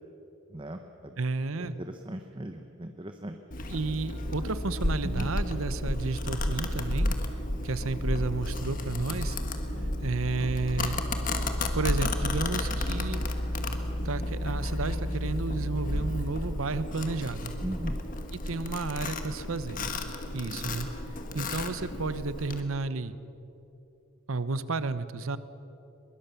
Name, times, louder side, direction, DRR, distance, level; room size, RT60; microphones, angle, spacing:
voice 1, 0.5-1.2 1.6-3.4 5.0-5.3 9.7-9.9 17.6-18.0, right 1 dB, 25° right, 6 dB, 0.8 m, -38 dB
voice 2, 1.2-1.8 3.7-7.1 7.6-9.4 10.0-11.0 11.7-13.2 14.0-17.5 18.3-19.8 20.3-20.9 21.3-23.2 24.3-25.4, right 3 dB, 70° right, 14 dB, 0.9 m, -32 dB
Domestic sounds home sounds, 3.5-22.6, left 1 dB, 40° left, 1.6 m, -32 dB
22.5 x 22.0 x 7.0 m, 3.0 s
head